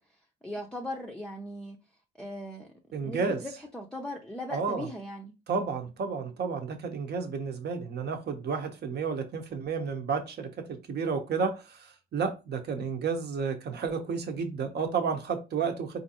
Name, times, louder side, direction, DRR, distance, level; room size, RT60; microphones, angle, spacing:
voice 1, 0.4-1.8 2.2-2.7 3.0-5.3, left 1 dB, 5° left, 0.5 m, -38 dB
voice 2, 2.9-3.4 4.5-4.9 5.5-16.0, right 5 dB, 55° right, 0.9 m, -31 dB
4.3 x 2.6 x 2.8 m
cardioid pair, 90°, 20 cm